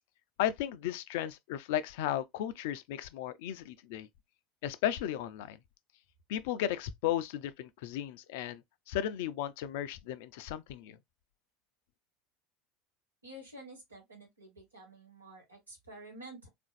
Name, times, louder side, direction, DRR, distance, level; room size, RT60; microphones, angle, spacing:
voice 1, 0.4-4.1 4.6-5.6 6.3-11.0, left 11 dB, 65° left, 0.4 m, -35 dB
voice 2, 13.2-16.5, right 1 dB, 85° right, 1.4 m, -50 dB
3.6 x 2.5 x 2.5 m
figure-of-eight pair, 75°, 0 cm